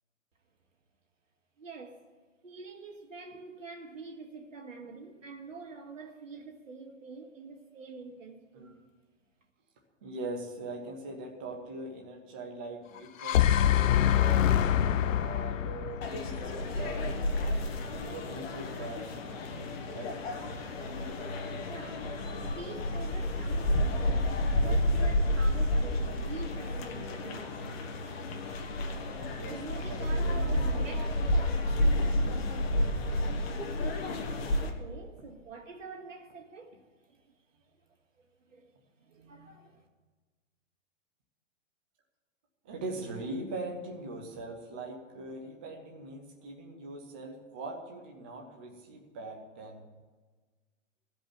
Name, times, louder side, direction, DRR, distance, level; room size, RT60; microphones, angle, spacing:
voice 1, 1.6-2.1 2.4-8.8 21.7-27.4 29.5-31.8 34.6-37.7 38.2-38.7 39.0-39.9, right 4 dB, 85° right, 2.1 m, -46 dB
voice 2, 10.0-17.1 17.8-19.1 19.9-20.1 29.3-31.2 42.6-49.9, right 2 dB, 10° right, 0.3 m, -42 dB
sound 1, 13.0-17.2, left 10 dB, 90° left, 0.6 m, -25 dB
sound 2, 16.0-34.7, left 1 dB, 50° left, 1.7 m, -30 dB
15.0 x 5.3 x 9.6 m
hypercardioid pair, 145°, 38 cm